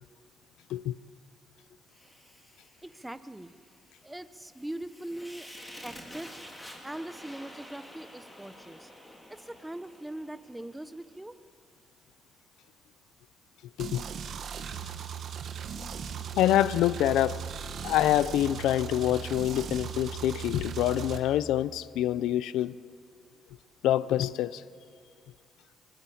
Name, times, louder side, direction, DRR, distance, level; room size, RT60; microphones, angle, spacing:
Fire, 1.9-11.1, equal, 10° left, 4.2 m, -50 dB
voice 1, 2.8-3.5 4.0-5.5 5.8-6.4 6.8-8.9 9.3-11.3, right 1 dB, 10° right, 0.9 m, -41 dB
sound 1, 13.8-21.2, right 8 dB, 65° right, 1.7 m, -38 dB
voice 2, 16.3-17.4 17.8-22.7 23.8-24.6, left 13 dB, 90° left, 0.5 m, -26 dB
22.0 x 19.0 x 8.5 m
cardioid pair, 90°, 0 cm